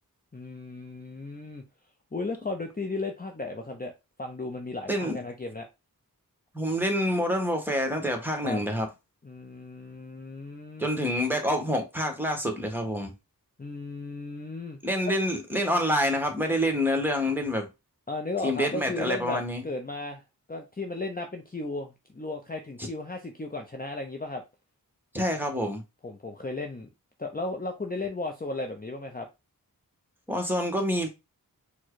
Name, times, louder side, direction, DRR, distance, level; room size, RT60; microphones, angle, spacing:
voice 1, 0.3-1.6 2.1-3.9 4.2-5.7 8.4-8.6 9.2-11.1 13.6-14.8 18.1-20.2 20.5-24.4 26.0-26.9 27.2-29.3, left 2 dB, 25° left, 0.7 m, -35 dB
voice 2, 4.9-5.2 6.5-8.9 10.8-13.1 14.8-17.7 18.4-19.6 25.1-25.8 30.3-31.1, equal, 5° right, 1.3 m, -27 dB
4.5 x 2.3 x 4.6 m
wide cardioid pair, 65°, 37 cm